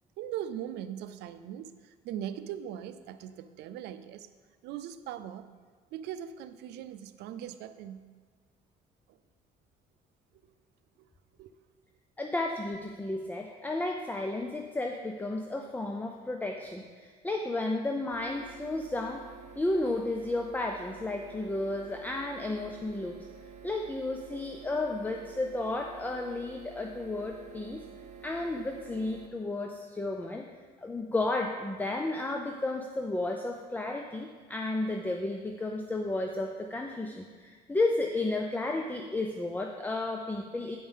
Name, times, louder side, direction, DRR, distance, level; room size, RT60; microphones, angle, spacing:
voice 1, 0.2-1.7 2.0-4.3 4.6-5.5 5.9-8.0 11.4-11.5, right 10 dB, 80° right, 12 dB, 0.5 m, -40 dB
voice 2, 12.2-19.2 19.6-23.2 23.6-27.8 28.2-30.5 30.8-40.8, left 2 dB, 10° left, 3 dB, 0.6 m, -33 dB
sound 1, 18.1-29.3, right 7 dB, 45° right, 0.8 m, -49 dB
9.3 x 5.4 x 5.5 m, 1.5 s
cardioid pair, 110°, 17 cm